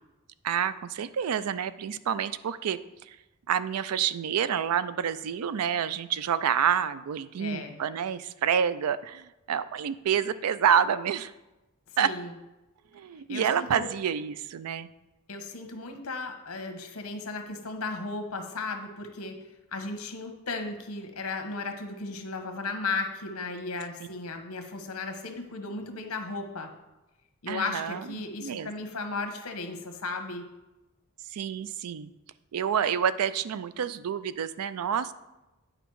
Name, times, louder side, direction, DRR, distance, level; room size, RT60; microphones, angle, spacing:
voice 1, 0.4-3.2 3.5-11.3 12.0-12.1 12.9-14.9 27.5-28.7 31.3-32.1 32.5-35.1, right 8 dB, 80° right, 15 dB, 0.4 m, -28 dB
voice 2, 7.4-7.8 11.9-12.3 13.3-13.9 15.3-19.4 19.7-26.7 27.4-30.4, left 3 dB, 70° left, 5 dB, 1.1 m, -35 dB
8.9 x 5.1 x 4.6 m, 1.0 s
head